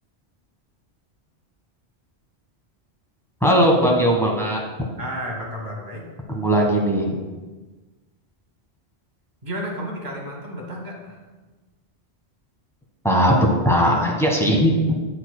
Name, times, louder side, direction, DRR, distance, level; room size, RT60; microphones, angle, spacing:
voice 1, 3.4-4.6 6.3-7.1 13.0-14.7, equal, 5° left, -1 dB, 1.3 m, -18 dB
voice 2, 5.0-6.0 9.4-11.2, equal, 45° right, -1 dB, 1.6 m, -32 dB
10.5 x 7.1 x 2.2 m, 1.2 s
omnidirectional pair, 1.1 m